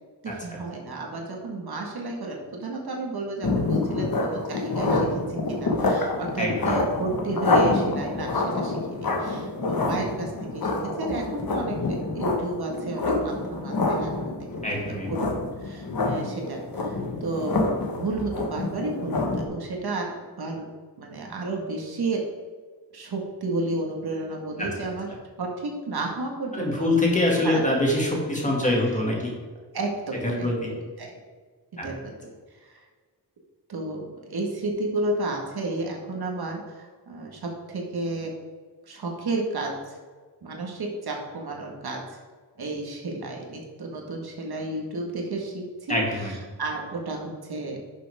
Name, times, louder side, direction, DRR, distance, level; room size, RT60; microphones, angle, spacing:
voice 1, 0.2-11.8 12.1-14.5 14.9-15.3 15.6-20.7 21.0-22.2 22.9-25.1 25.4-26.9 27.4-27.6 29.7-31.1 31.8-32.8 33.7-38.3 38.9-40.0 40.4-42.2 42.6-47.8, right 2 dB, 60° right, 0 dB, 1.8 m, -32 dB
sound 1, 3.4-19.4, left 3 dB, 55° left, 1.7 m, -27 dB
voice 2, 6.4-6.8 14.6-15.1 24.6-24.7 26.5-29.3 30.1-30.7 31.8-31.9 45.9-46.3, left 1 dB, 15° left, -2 dB, 2.3 m, -24 dB
11.0 x 6.8 x 3.6 m, 1.5 s
wide cardioid pair, 130°, 42 cm